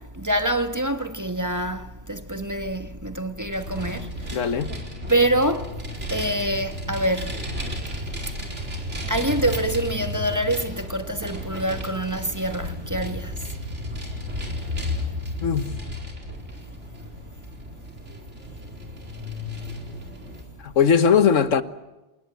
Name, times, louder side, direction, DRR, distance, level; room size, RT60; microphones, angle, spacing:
voice 1, 0.0-4.4 5.1-5.8 6.1-7.4 8.5-8.7 9.0-13.6, right 1 dB, 10° right, 1.1 m, -26 dB
Vehicle, 3.5-20.4, left 1 dB, 40° right, 4.6 m, -33 dB
voice 2, 4.3-4.7 15.4-15.7 20.6-21.6, left 7 dB, 50° left, 1.3 m, -19 dB
28.5 x 20.0 x 9.1 m
omnidirectional pair, 1.9 m